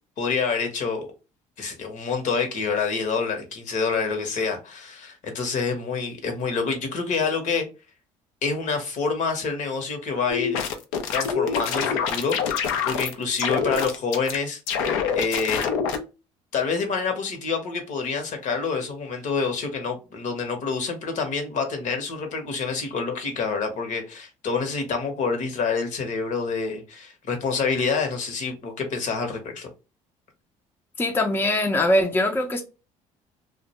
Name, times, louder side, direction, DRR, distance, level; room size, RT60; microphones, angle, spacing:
voice 1, 0.2-1.1 1.6-7.7 8.4-10.6 11.1-15.7 16.5-29.7, left 5 dB, 55° left, 0.8 m, -27 dB
sound 1, 10.3-13.1 13.4-14.4 14.7-16.0, left 7 dB, 90° left, 0.4 m, -25 dB
voice 2, 31.0-32.6, left 1 dB, 15° left, 0.5 m, -22 dB
2.2 x 2.1 x 2.8 m
supercardioid pair, 80°, 15 cm